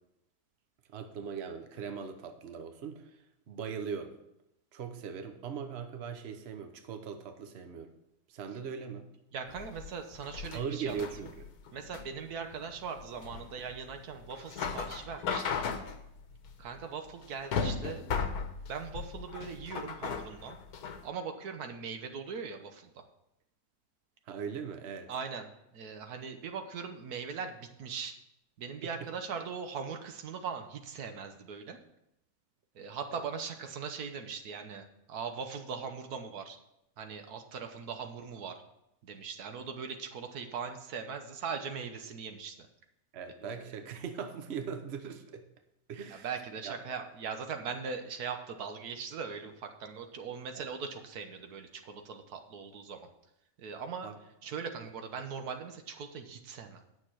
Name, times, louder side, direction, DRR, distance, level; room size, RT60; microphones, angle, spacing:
voice 1, 0.9-3.2 3.5-4.1 4.7-7.9 8.3-9.1 10.5-11.5 24.3-25.1 28.8-29.1 43.1-45.5 45.9-46.3 46.6-46.7 50.5-50.7 54.0-54.1, right 6 dB, 50° right, 7 dB, 1.1 m, -40 dB
voice 2, 9.3-11.0 11.7-15.7 16.6-18.0 18.7-20.6 21.0-23.0 25.1-28.1 28.6-31.8 32.7-36.6 37.0-38.6 39.0-42.7 43.3-43.7 46.1-53.1 53.6-54.1 54.4-56.8, right 6 dB, 85° right, 6 dB, 1.5 m, -40 dB
sound 1, 9.5-21.1, left 5 dB, 85° left, 1.4 m, -37 dB
9.5 x 6.6 x 6.1 m, 0.83 s
omnidirectional pair, 1.6 m